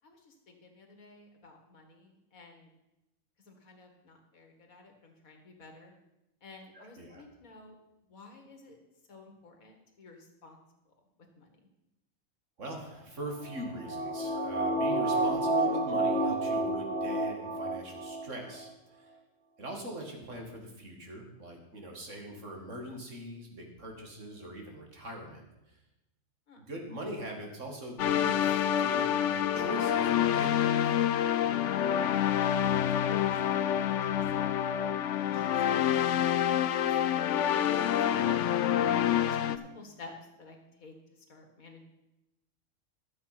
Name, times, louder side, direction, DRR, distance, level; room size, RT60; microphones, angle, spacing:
voice 1, 0.0-2.8 3.5-6.0 6.4-7.8 8.1-8.8 9.1-10.6 11.4-11.6 26.5-26.6 31.7-32.0 32.6-33.4 33.8-34.8 35.1-37.4 38.0-40.1 40.4-40.9 41.3-41.8, left 2 dB, 85° left, 4 dB, 2.2 m, -51 dB
voice 2, 6.7-7.2 12.6-19.1 19.6-25.8 26.6-28.5 28.8-30.8 38.1-38.2, right 1 dB, 60° right, 2 dB, 2.4 m, -42 dB
sound 1, 13.4-18.2 18.5-18.6, right 2 dB, 35° right, 2.2 m, -30 dB
sound 2, 28.0-39.6, left 10 dB, 70° left, 0.9 m, -27 dB
12.0 x 7.6 x 5.9 m, 0.92 s
omnidirectional pair, 1.4 m